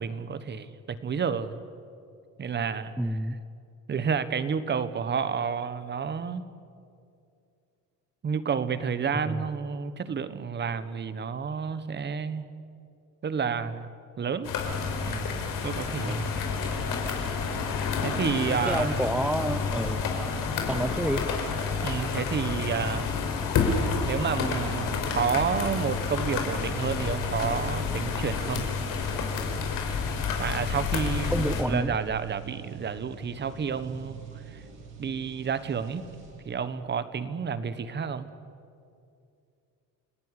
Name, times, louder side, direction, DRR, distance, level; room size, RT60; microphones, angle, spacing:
voice 1, 0.0-1.6 2.4-2.9 3.9-6.4 8.2-12.4 13.2-13.9 14.2-14.5 15.0-15.4 15.6-16.3 18.0-19.1 21.8-23.1 24.1-28.7 30.4-34.2 34.5-34.6 35.0-36.0 36.4-38.3, right 6 dB, 30° right, 13 dB, 1.3 m, -30 dB
voice 2, 3.0-3.4 9.2-9.4 16.1-16.3 18.6-20.1 20.7-21.2 31.3-32.0, right 1 dB, 5° right, 10 dB, 0.6 m, -29 dB
sound 1, 14.4-31.6, left 5 dB, 75° left, 4.7 m, -29 dB
sound 2, 31.3-36.8, right 7 dB, 75° right, 7.9 m, -45 dB
29.0 x 17.5 x 10.0 m, 2.5 s
cardioid pair, 140°, 33 cm